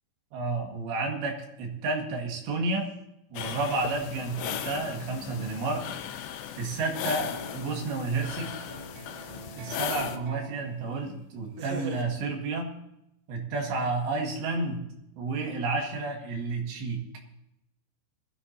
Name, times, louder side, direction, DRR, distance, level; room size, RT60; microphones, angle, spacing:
voice 1, 0.3-2.9 3.3-5.8 6.6-8.5 9.6-12.7 13.3-14.8 15.2-17.0, right 3 dB, 85° right, 1 dB, 4.2 m, -31 dB
sound 1, 3.4-10.2, left 9 dB, 80° left, 2.8 m, -37 dB
sound 2, 7.0-11.1 11.6-12.0, right 4 dB, 65° right, 1.6 m, -44 dB
20.5 x 14.0 x 2.8 m, 0.83 s
omnidirectional pair, 4.9 m